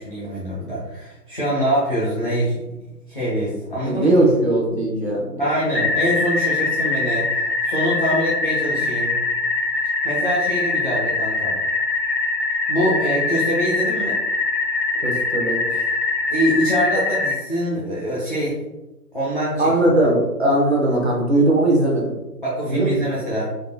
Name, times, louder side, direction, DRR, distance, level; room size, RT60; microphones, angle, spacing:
voice 1, 0.0-2.6 3.1-4.1 5.4-7.3 7.7-9.2 10.0-11.6 12.7-14.2 16.3-18.6 19.1-19.7 22.4-23.5, equal, 35° left, -9 dB, 0.6 m, -24 dB
voice 2, 3.8-5.4 15.0-15.9 19.6-22.2 22.6-22.9, right 1 dB, 40° right, -2 dB, 0.8 m, -19 dB
sound 1, 5.7-17.3, left 3 dB, 80° left, 0.9 m, -23 dB
3.5 x 2.7 x 2.3 m, 1.0 s
figure-of-eight pair, 150°, 48 cm